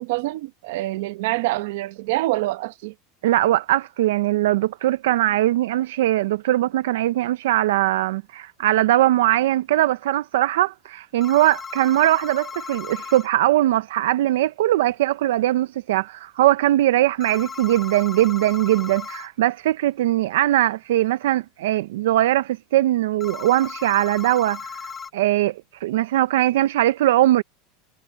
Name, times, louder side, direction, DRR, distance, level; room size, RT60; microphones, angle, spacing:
voice 1, 0.0-2.9, right 19 dB, 60° right, 0.9 m, -26 dB
voice 2, 3.2-24.7 25.1-27.4, right 14 dB, 85° right, 0.5 m, -20 dB
sound 1, 11.2-13.3 17.2-19.3 23.2-25.1, left 6 dB, 15° left, 1.4 m, -36 dB
supercardioid pair, 180°, 0 cm